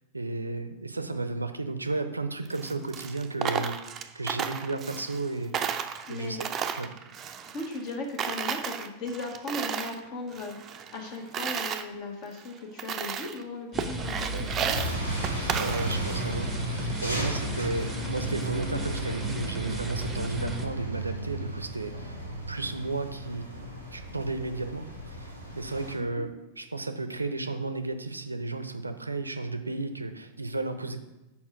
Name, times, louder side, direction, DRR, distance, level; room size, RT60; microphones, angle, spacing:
voice 1, 0.1-3.8 4.1-5.7 6.1-6.5 6.8-6.9 14.3-14.5 15.6-22.2 22.5-23.5 23.9-25.3 25.6-26.3 26.6-31.0, right 2 dB, 80° right, 9 dB, 0.5 m, -33 dB
Coin (dropping), 2.5-5.3 5.5-7.9 8.2-10.0 10.3-11.8 12.4-12.5 12.8-13.4 13.8-16.2, right 7 dB, 25° right, 0.5 m, -33 dB
voice 2, 6.1-6.4 7.5-14.8 20.4-20.5 26.0-26.3, left 2 dB, 40° left, 2 dB, 1.5 m, -37 dB
sound 1, 13.7-20.6, right 1 dB, 5° right, 0.9 m, -34 dB
sound 2, 14.7-25.9, right 1 dB, 90° left, 1.4 m, -35 dB
5.5 x 4.4 x 6.2 m, 1.0 s
figure-of-eight pair, 90°, 0 cm